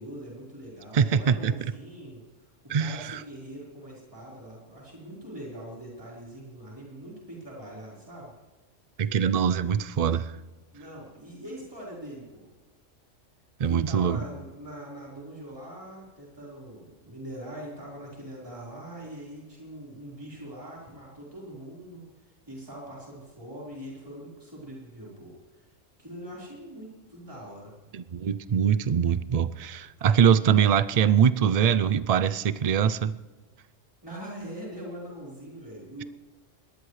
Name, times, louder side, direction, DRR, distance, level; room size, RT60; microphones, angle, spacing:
voice 1, 0.0-2.2 2.7-8.3 9.0-9.1 10.7-12.5 13.6-22.0 22.5-25.7 26.0-28.0 34.0-36.0, right 1 dB, 20° right, -5 dB, 4.5 m, -42 dB
voice 2, 0.9-1.5 2.7-3.2 9.0-10.3 13.6-14.2 27.9-33.2, right 7 dB, 50° right, 15 dB, 0.4 m, -23 dB
23.5 x 18.5 x 3.2 m, 1.2 s
omnidirectional pair, 1.3 m